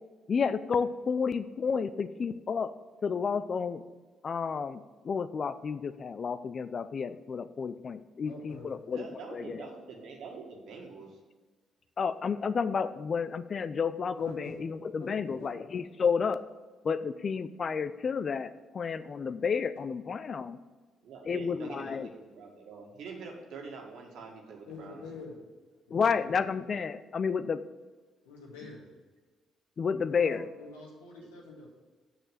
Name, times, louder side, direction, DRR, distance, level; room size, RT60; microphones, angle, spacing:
voice 1, 0.3-2.7 3.0-3.8 4.2-9.0 9.3-9.6 12.0-16.4 16.8-20.6 21.3-22.1 25.9-27.6 29.8-30.5, left 6 dB, 50° left, 14 dB, 0.5 m, -31 dB
voice 2, 8.2-8.8 14.2-14.5 15.0-15.5 24.7-25.4 25.9-26.4 28.2-28.8 30.1-31.7, left 3 dB, 90° left, -2 dB, 2.2 m, -46 dB
voice 3, 8.9-11.2 21.0-25.0 31.2-31.3, right 4 dB, 70° right, 1 dB, 2.0 m, -45 dB
6.9 x 6.7 x 7.4 m, 1.4 s
hypercardioid pair, 50°, 0 cm